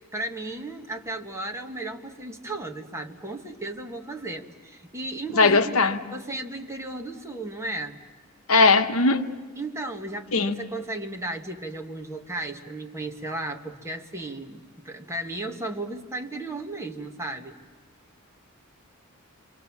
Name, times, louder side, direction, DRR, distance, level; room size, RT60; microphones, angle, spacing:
voice 1, 0.1-5.8 6.1-8.0 9.6-17.5, right 2 dB, 15° right, 1.6 m, -35 dB
voice 2, 5.3-6.0 8.5-9.3 10.3-10.5, left 3 dB, 70° left, 1.2 m, -19 dB
28.5 x 25.5 x 7.2 m
head